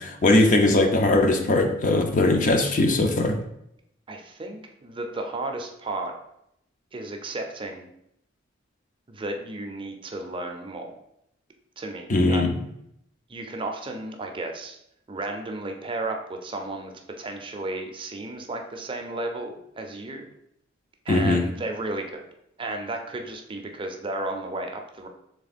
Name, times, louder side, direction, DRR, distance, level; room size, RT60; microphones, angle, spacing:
voice 1, 0.0-3.4 12.1-12.5 21.1-21.4, left 2 dB, 40° left, 4 dB, 0.5 m, -20 dB
voice 2, 4.1-6.1 6.9-7.9 9.1-10.9 11.8-12.5 13.3-14.8 15.1-20.3 21.1-22.2 22.6-25.1, right 2 dB, 25° right, 4 dB, 0.5 m, -33 dB
3.5 x 3.2 x 4.1 m, 0.77 s
head